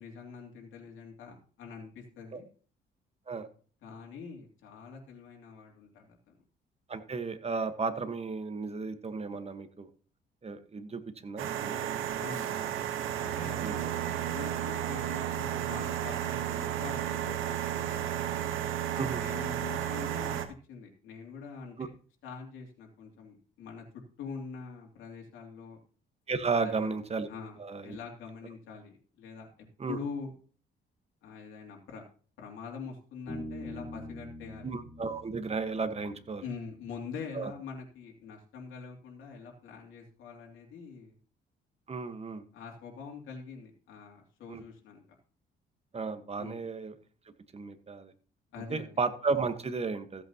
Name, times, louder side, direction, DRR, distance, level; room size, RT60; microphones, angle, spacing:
voice 1, 0.0-2.4 3.8-6.3 12.2-12.8 13.1-13.9 14.2-18.2 19.1-20.4 20.7-21.9 22.2-23.8 24.2-25.8 26.6-26.9 27.3-29.5 29.9-30.3 31.2-32.0 32.4-34.7 36.4-41.1 42.5-45.0 46.4-46.6 48.5-48.9, left 5 dB, 85° left, 0 dB, 3.0 m, -44 dB
voice 2, 6.9-9.9 10.4-12.0 13.6-13.8 18.9-19.2 21.8-21.9 26.3-27.3 27.6-28.0 29.8-30.0 34.6-36.4 37.3-37.5 41.9-42.4 44.5-44.6 45.9-46.9 47.5-48.1 48.7-50.2, right 4 dB, 30° right, 9 dB, 1.4 m, -34 dB
sound 1, 11.4-20.5, right 10 dB, 85° right, 1.3 m, -33 dB
Bass guitar, 33.3-36.8, left 1 dB, 50° left, 3.9 m, -44 dB
15.0 x 8.2 x 2.9 m, 0.40 s
cardioid pair, 90°, 20 cm